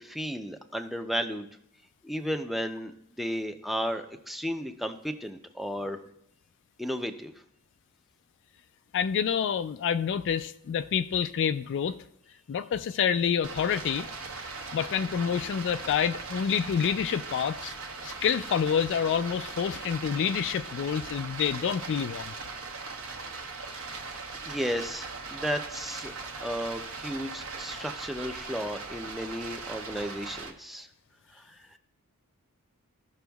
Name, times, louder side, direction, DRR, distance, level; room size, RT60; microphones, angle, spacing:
voice 1, 0.0-1.5 2.0-6.0 6.8-7.3 23.9-24.0 24.5-26.1 26.4-30.9 31.5-31.6, equal, ahead, 0.5 m, -34 dB
voice 2, 8.9-12.0 12.5-14.1 14.7-17.7 18.0-22.3, left 7 dB, 55° left, 0.3 m, -28 dB
Stream, 13.4-30.5, right 4 dB, 65° right, 1.1 m, -39 dB
16.0 x 6.1 x 2.3 m
head